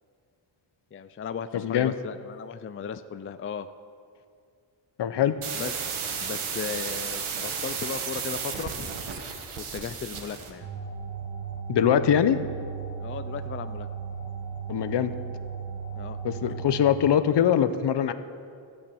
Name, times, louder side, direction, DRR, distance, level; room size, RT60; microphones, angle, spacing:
voice 1, 0.9-3.7 5.5-5.9 6.2-8.9 9.6-10.7 13.0-13.9 16.0-16.2 16.5-16.6, left 6 dB, 30° left, 12 dB, 0.4 m, -36 dB
voice 2, 1.5-1.9 5.0-5.4 11.7-12.4 14.7-15.1 16.2-18.1, left 9 dB, 60° left, 12 dB, 0.7 m, -22 dB
sound 1, 5.4-10.5, right 6 dB, 85° right, 1.6 m, -33 dB
sound 2, 10.6-16.8, right 6 dB, 40° right, 1.8 m, -36 dB
13.0 x 8.7 x 7.0 m, 2.4 s
cardioid pair, 110°, 48 cm